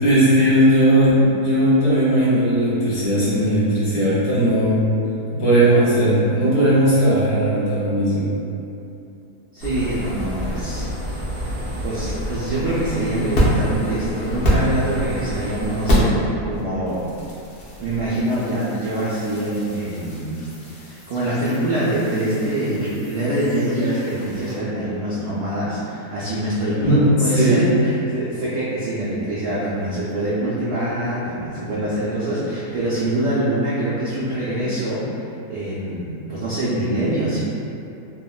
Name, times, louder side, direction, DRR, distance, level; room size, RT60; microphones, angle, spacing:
voice 1, 0.0-4.9 5.3-8.3 26.8-27.0 27.3-27.6, right 1 dB, 75° left, -10 dB, 1.5 m, -17 dB
voice 2, 9.5-10.9 11.3-17.0 17.8-20.3 20.8-35.2 35.5-37.4, right 1 dB, 85° right, -9 dB, 0.6 m, -24 dB
sound 1, 9.6-16.2 16.5-24.5, equal, 60° left, 0.6 m, -27 dB
3.5 x 2.1 x 2.2 m, 2.7 s
omnidirectional pair, 1.7 m